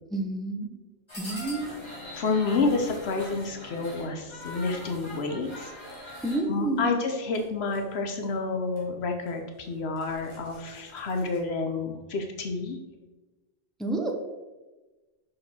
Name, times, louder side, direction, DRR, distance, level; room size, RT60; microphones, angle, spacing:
voice 1, 0.1-0.7 1.2-1.7 2.6-2.7 6.2-6.9 13.8-14.1, right 2 dB, ahead, 3 dB, 0.6 m, -29 dB
sound 1, 1.1-6.4 7.3-7.8 8.2-8.4 8.8-8.9 9.3-9.4 9.8-11.4, left 1 dB, 25° left, 2.0 m, -44 dB
sound 2, 1.2-9.9 11.1-11.2, left 2 dB, 55° left, 1.6 m, -53 dB
voice 2, 2.1-5.7 6.5-12.8, left 3 dB, 80° left, 4 dB, 1.0 m, -29 dB
6.1 x 5.2 x 4.2 m, 1.2 s
omnidirectional pair, 1.1 m